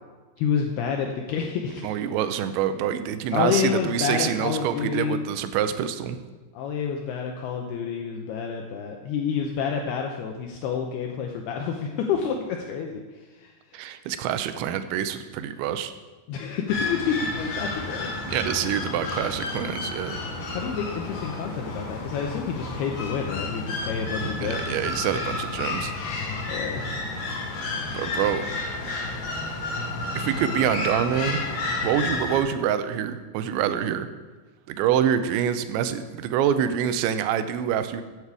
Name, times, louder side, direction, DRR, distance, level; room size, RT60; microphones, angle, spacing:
voice 1, 0.4-2.0 3.3-5.3 6.5-13.0 13.4-13.9 16.3-18.1 20.5-24.8 26.5-27.0, left 6 dB, 80° left, 2 dB, 2.5 m, -29 dB
voice 2, 1.8-6.2 13.7-15.9 18.3-20.2 24.2-25.9 27.9-28.4 30.2-31.4 31.8-34.1 34.7-38.0, right 9 dB, 90° right, 10 dB, 3.0 m, -26 dB
sound 1, 16.7-32.4, left 2 dB, 55° left, 3.7 m, -31 dB
14.0 x 8.3 x 4.7 m, 1.3 s
omnidirectional pair, 5.2 m